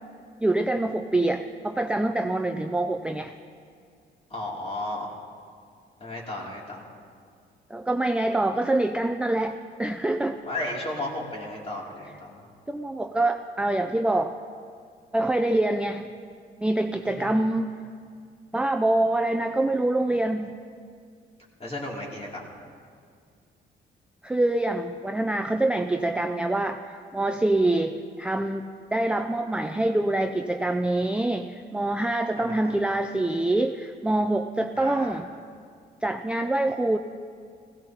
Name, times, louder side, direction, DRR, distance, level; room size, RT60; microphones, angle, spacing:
voice 1, 0.4-3.3 7.7-10.4 12.7-14.3 15.1-16.1 16.6-17.7 18.5-20.5 24.2-35.3 36.0-37.0, right 2 dB, 5° right, 5 dB, 0.4 m, -25 dB
voice 2, 4.3-5.1 6.0-6.8 10.5-12.4 17.2-17.3 21.6-22.5 32.3-32.7 34.7-35.2, left 1 dB, 30° left, -3 dB, 3.0 m, -34 dB
16.5 x 16.0 x 3.0 m, 2.2 s
cardioid pair, 90°, 20 cm